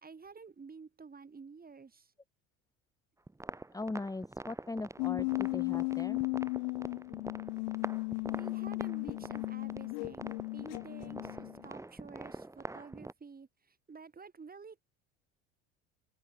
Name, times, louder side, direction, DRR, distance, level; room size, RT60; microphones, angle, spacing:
voice 1, 0.0-2.1 8.2-13.5 13.9-14.8, right 5 dB, 25° right, 4.4 m, -51 dB
sound 1, 3.3-13.1, right 2 dB, 10° right, 1.5 m, -45 dB
voice 2, 3.7-6.2, left 2 dB, 10° left, 1.4 m, -39 dB
sound 2, 5.0-11.7, left 30 dB, 70° left, 0.6 m, -35 dB
hypercardioid pair, 80°, 38 cm